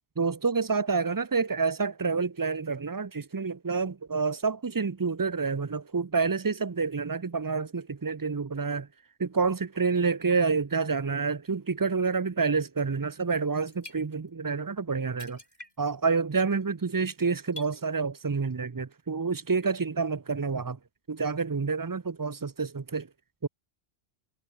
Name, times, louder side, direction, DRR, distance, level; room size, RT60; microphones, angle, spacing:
voice 1, 0.2-8.9 9.2-15.4 15.8-20.8 21.1-23.1 23.4-23.5, right 4 dB, 30° right, 0.4 m, -28 dB
Liquor bottle liquid slosh - lid on then lid off, 13.1-13.2 13.4-14.5 14.8-14.9 15.2-16.0 16.4-16.6 17.2-17.9 18.5-18.6, left 1 dB, 40° left, 7.2 m, -47 dB
omnidirectional pair, 1.1 m